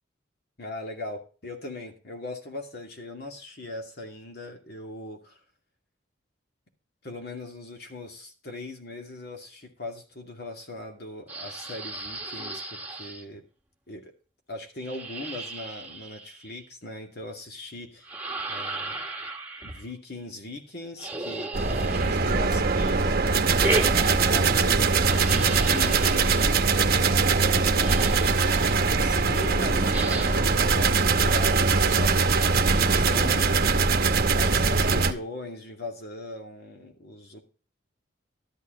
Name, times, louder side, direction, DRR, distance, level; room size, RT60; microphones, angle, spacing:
voice 1, 0.6-5.4 7.0-13.4 13.9-14.1 14.5-18.1 18.5-19.0 19.6-24.9 25.3-26.6 27.5-27.7 29.0-33.7 34.3-37.4, left 2 dB, 55° left, 3 dB, 2.5 m, -39 dB
sound 1, 11.3-13.2 14.8-16.6 18.0-19.9 21.0-22.6 23.6-24.7 25.0-26.6 27.5-27.6 27.8-28.9 29.9-30.5, right 2 dB, 10° right, 1.5 m, -34 dB
sound 2, 21.5-35.1, right 4 dB, 50° right, 0.9 m, -22 dB
13.0 x 8.4 x 3.8 m, 0.37 s
head